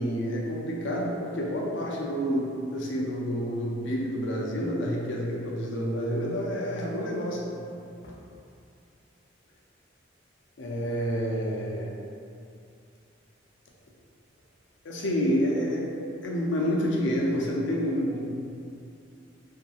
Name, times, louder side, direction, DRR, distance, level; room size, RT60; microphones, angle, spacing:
voice 1, 0.0-7.6 8.0-8.1 10.6-11.9 14.8-15.9 16.2-18.2, equal, 70° left, -3 dB, 0.5 m, -28 dB
2.7 x 2.7 x 2.4 m, 2.5 s
head